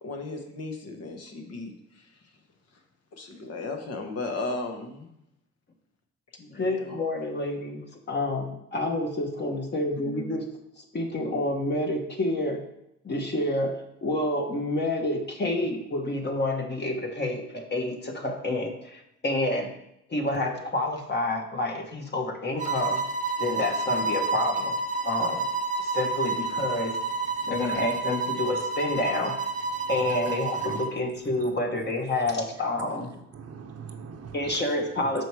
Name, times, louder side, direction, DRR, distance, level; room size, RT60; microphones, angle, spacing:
voice 1, 0.0-2.3 3.1-5.1 6.5-6.9 10.0-10.4, left 3 dB, 55° left, 3 dB, 1.4 m, -36 dB
voice 2, 6.4-7.8 8.1-10.4 10.8-12.6 13.0-19.7 20.1-23.0 23.4-24.8 25.0-25.5 25.8-27.0 27.5-29.4 29.9-33.1 34.3-35.3, left 1 dB, 35° left, 3 dB, 1.4 m, -28 dB
sound 1, 22.6-31.0, right 3 dB, 25° right, 0.8 m, -29 dB
voice 3, 27.4-27.8 29.9-30.1 30.6-30.8 31.4-31.5 33.3-34.6, right 6 dB, 55° right, 5 dB, 0.9 m, -42 dB
6.3 x 5.1 x 4.7 m, 0.81 s
cardioid pair, 90°, 30 cm